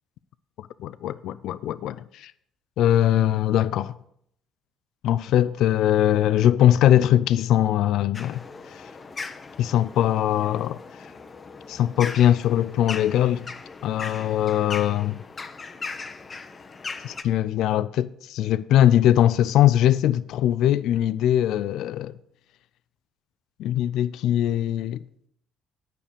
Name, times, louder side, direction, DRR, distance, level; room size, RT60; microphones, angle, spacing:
voice 1, 0.6-2.3 2.8-3.9 5.0-8.4 8.7-8.8 9.6-10.8 11.7-13.5 13.8-15.2 17.0-22.1 23.6-25.0, left 11 dB, 70° left, 0.3 m, -21 dB
sound 1, 8.1-17.2, left 4 dB, 35° left, 0.8 m, -39 dB
9.2 x 5.3 x 6.5 m
supercardioid pair, 65°, 0 cm